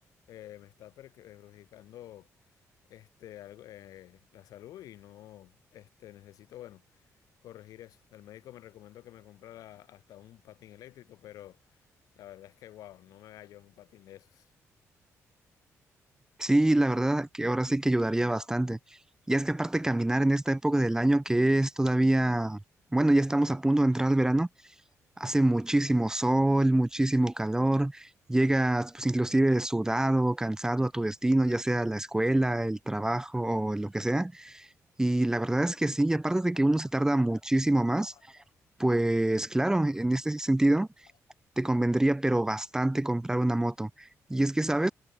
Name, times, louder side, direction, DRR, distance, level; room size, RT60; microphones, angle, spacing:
voice 1, 0.3-2.3 2.9-7.1 7.4-11.8 12.1-14.5 38.1-38.2, left 13 dB, 85° left, 5.1 m, -50 dB
voice 2, 16.4-18.8 19.3-22.6 22.9-24.5 25.2-34.7 35.0-38.1 38.8-40.9 41.6-44.9, right 1 dB, 10° right, 0.6 m, -26 dB
cardioid pair, 85°, 6 cm